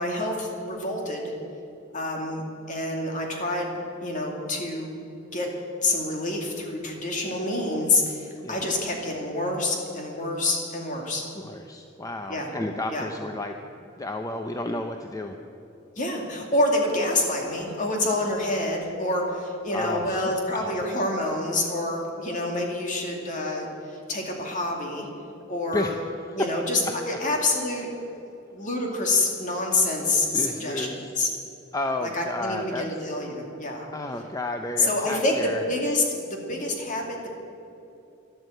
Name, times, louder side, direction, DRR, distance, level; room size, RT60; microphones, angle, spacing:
voice 1, 0.0-1.3 1.9-2.4 2.7-3.7 4.0-4.9 5.3-5.5 5.8-11.2 12.3-12.5 12.9-13.1 16.0-25.1 25.5-25.9 26.3-27.9 28.5-31.3 32.0-33.9 34.8-37.3, left 2 dB, 40° left, 1 dB, 2.5 m, -27 dB
voice 2, 11.4-13.5 14.0-15.4 19.7-20.8 25.7-26.0 28.3-28.4 30.3-31.0 31.7-32.9 33.9-35.6, left 2 dB, 20° left, 5 dB, 0.6 m, -32 dB
12.5 x 11.5 x 7.9 m, 2.8 s
head